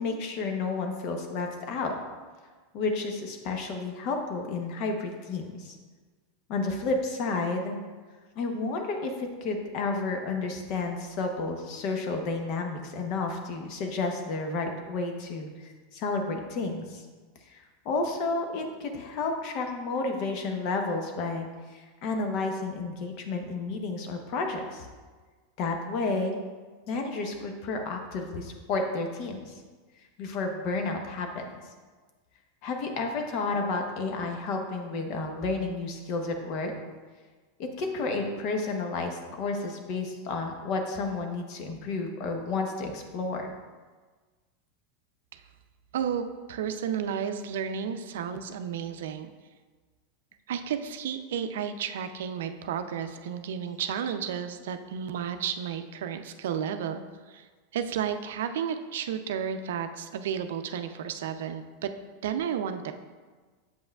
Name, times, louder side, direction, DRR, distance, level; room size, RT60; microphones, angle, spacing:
voice 1, 0.0-1.9 2.7-5.7 6.5-7.8 8.4-15.5 15.9-17.0 17.5-21.5 21.7-24.9 25.6-26.4 26.9-29.5 30.2-31.5 32.6-36.7 37.6-43.5, left 3 dB, 55° left, 4 dB, 0.9 m, -31 dB
voice 2, 45.9-49.3 50.5-57.5 57.7-61.9 62.2-62.9, right 8 dB, 80° right, 8 dB, 0.4 m, -32 dB
7.7 x 5.4 x 2.3 m, 1.4 s
hypercardioid pair, 115°, 0 cm